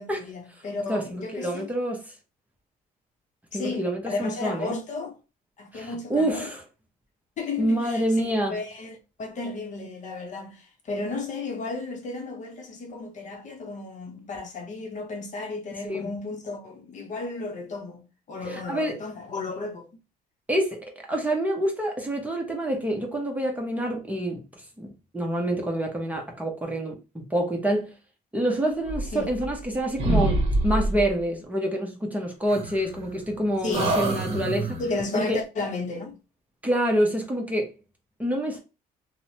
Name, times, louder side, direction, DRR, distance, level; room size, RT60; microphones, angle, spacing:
voice 1, 0.0-1.7 3.5-5.2 5.6-6.5 7.4-19.9 29.1-29.3 33.6-34.0 34.8-36.2, left 3 dB, 45° left, 0.7 m, -33 dB
voice 2, 0.9-2.1 3.5-4.8 5.7-6.6 7.6-8.6 15.8-16.1 18.4-19.0 20.5-28.0 28.3-34.8 35.1-35.4 36.6-37.7 38.2-38.6, right 1 dB, 10° right, 0.7 m, -27 dB
sound 1, 28.8-29.7 30.0-31.1 32.5-33.3 33.7-35.0, right 2 dB, 40° right, 0.9 m, -26 dB
3.0 x 2.0 x 2.8 m
cardioid pair, 110°, 17 cm